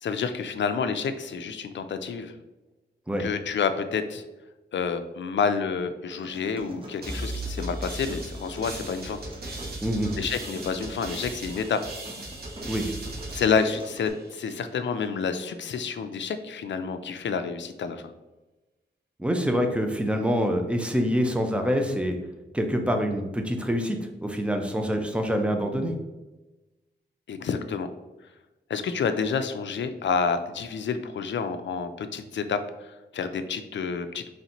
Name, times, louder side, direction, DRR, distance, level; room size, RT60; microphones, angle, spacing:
voice 1, 0.0-2.3 3.2-4.2 4.7-9.2 10.2-11.8 13.3-18.1 27.3-27.9 28.7-34.3, left 5 dB, 75° left, 9 dB, 0.4 m, -29 dB
sound 1, 6.1-14.1, right 1 dB, 25° right, 0.9 m, -43 dB
sound 2, 7.0-14.5, right 1 dB, 55° right, 1.3 m, -37 dB
voice 2, 9.8-10.1 12.7-12.9 19.2-22.1 22.5-25.9, equal, 5° right, 4 dB, 0.6 m, -26 dB
4.1 x 3.2 x 2.9 m, 1.1 s
wide cardioid pair, 80°, 19 cm